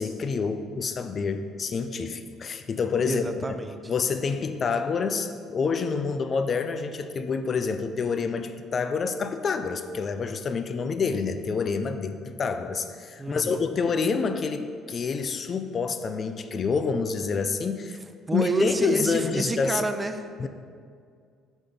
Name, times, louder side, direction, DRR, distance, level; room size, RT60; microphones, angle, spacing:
voice 1, 0.0-3.6 3.9-18.0 18.3-19.8 20.4-20.5, left 5 dB, 45° left, 9 dB, 0.5 m, -28 dB
voice 2, 3.0-3.9 13.2-13.6 18.3-20.5, right 3 dB, 20° right, 8 dB, 0.5 m, -29 dB
6.2 x 4.9 x 5.4 m, 2.2 s
supercardioid pair, 65°, 0 cm